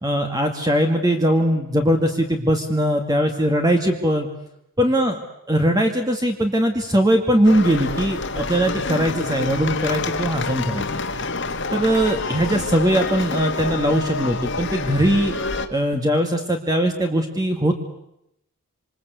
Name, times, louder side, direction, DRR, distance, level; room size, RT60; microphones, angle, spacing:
voice 1, 0.0-4.3 4.8-5.2 5.5-10.9 11.7-15.3 15.7-17.8, equal, 15° right, 3 dB, 2.2 m, -20 dB
sound 1, 7.4-15.7, left 3 dB, 55° left, 2.1 m, -27 dB
27.0 x 26.0 x 8.3 m, 0.80 s
head